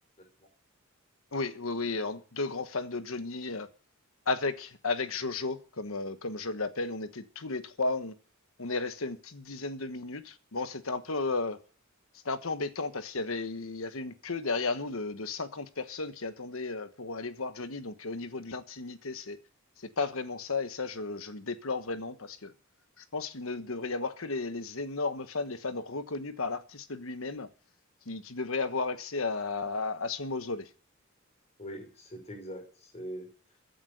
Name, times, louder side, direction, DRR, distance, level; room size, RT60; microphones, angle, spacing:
voice 1, 1.3-3.7 4.3-8.1 8.6-11.6 12.2-19.4 20.0-22.5 23.0-27.5 28.1-30.7, left 3 dB, 75° left, 1.3 m, -34 dB
voice 2, 31.6-33.3, equal, 30° left, 5.3 m, -43 dB
15.5 x 8.5 x 8.1 m
head